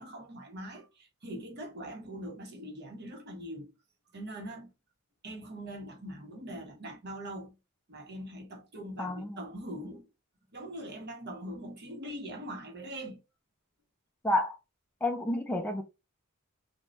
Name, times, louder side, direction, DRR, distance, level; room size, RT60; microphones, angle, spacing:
voice 1, 0.0-3.7 4.1-4.7 5.2-7.5 7.9-10.1 10.5-13.2, right 1 dB, 50° right, 1.0 m, -42 dB
voice 2, 9.0-9.4 14.2-14.6 15.0-15.8, left 1 dB, 5° left, 0.4 m, -30 dB
2.6 x 2.3 x 3.1 m
head